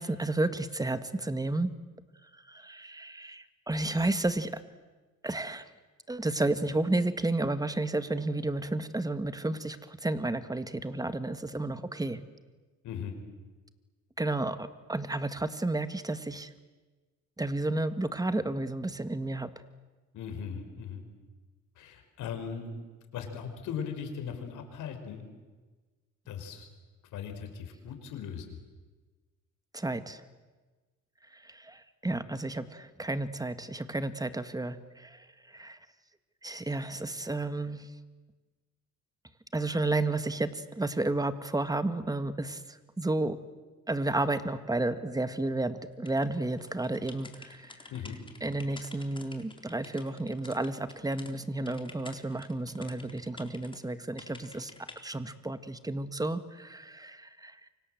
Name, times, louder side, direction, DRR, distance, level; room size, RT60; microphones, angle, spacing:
voice 1, 0.0-1.7 2.3-4.6 5.2-5.7 6.1-12.2 14.2-16.5 17.4-19.5 29.7-30.2 31.3-35.8 36.4-37.9 39.5-43.4 43.9-47.9 48.4-54.7 55.0-57.7, right 2 dB, 10° right, 12 dB, 1.9 m, -32 dB
voice 2, 12.8-13.2 20.1-21.1 21.7-22.7 23.1-25.3 26.3-26.7 27.1-28.6 47.9-48.2, left 7 dB, 85° left, 6 dB, 5.1 m, -38 dB
sound 1, 46.1-51.3 51.7-53.8 54.2-55.0, left 2 dB, 15° left, 3.8 m, -50 dB
28.5 x 25.5 x 7.9 m, 1.3 s
cardioid pair, 90°, 30 cm